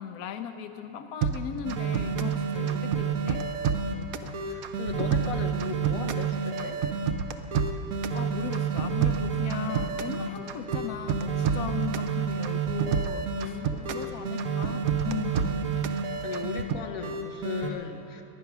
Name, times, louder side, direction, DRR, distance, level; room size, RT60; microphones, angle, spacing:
voice 1, 0.0-3.4 8.1-13.6 13.8-15.8, left 8 dB, 80° left, 8 dB, 0.8 m, -38 dB
sound 1, 1.2-2.4 2.7-4.3 4.6-6.3 6.6-8.2 8.5-10.2 10.5-12.1 12.4-14.1 14.4-16.0 16.3-16.8, right 7 dB, 70° right, 0.8 m, -29 dB
sound 2, 1.6-3.9 4.3-7.1 7.5-10.3 10.7-13.5 13.9-16.6 17.0-17.7, right 6 dB, 50° right, 1.1 m, -30 dB
voice 2, 2.6-2.9 3.9-6.8 10.3-10.5 13.3-14.2 15.4-18.2, left 7 dB, 55° left, 5 dB, 1.1 m, -38 dB
20.0 x 10.5 x 6.0 m, 2.9 s
omnidirectional pair, 2.2 m